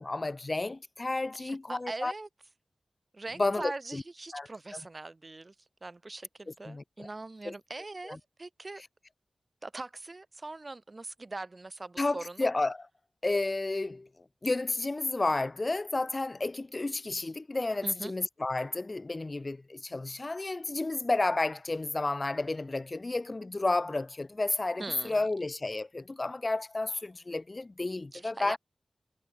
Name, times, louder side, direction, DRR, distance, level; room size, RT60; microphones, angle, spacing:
voice 1, 0.0-2.1 3.4-4.0 4.3-4.8 6.7-7.1 7.5-7.6 8.0-8.2 12.0-12.9 13.2-14.1 14.4-28.6, left 2 dB, 35° left, 1.9 m, -31 dB
voice 2, 1.4-2.3 3.1-5.5 5.8-8.8 9.6-12.5 17.8-18.1 24.8-25.3 28.1-28.6, right 2 dB, 35° right, 1.1 m, -42 dB
wide cardioid pair, 90°, 0 cm